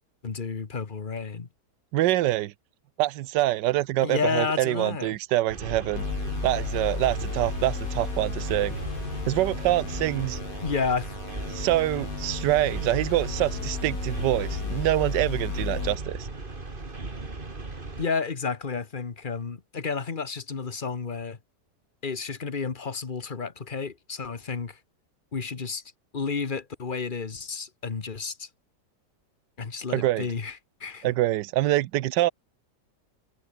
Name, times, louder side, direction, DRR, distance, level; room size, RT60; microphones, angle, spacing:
voice 1, 0.2-1.5 4.0-5.1 10.6-11.1 18.0-21.4 22.0-24.8 25.3-25.8 26.1-28.5 29.6-31.1, left 5 dB, 30° left, 1.4 m, -31 dB
voice 2, 1.9-2.5 3.0-6.1 6.4-8.8 9.3-10.4 11.5-16.3 29.9-30.3 31.0-32.3, right 15 dB, 85° right, 1.3 m, -25 dB
sound 1, 5.5-18.1, right 3 dB, 30° right, 2.6 m, -37 dB
sound 2, 6.0-16.0, left 5 dB, 55° left, 2.6 m, -34 dB
omnidirectional pair, 1.8 m